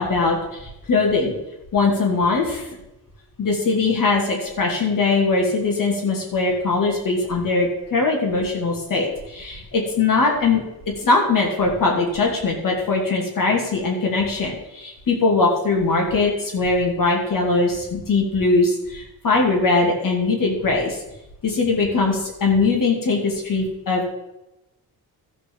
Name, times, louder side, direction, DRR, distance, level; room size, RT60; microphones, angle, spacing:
voice 1, 0.0-1.3 1.7-2.7 3.4-10.6 11.0-21.0 21.4-24.1, left 3 dB, 60° left, -1 dB, 2.7 m, -21 dB
13.0 x 5.1 x 7.1 m, 0.92 s
cardioid pair, 95°, 38 cm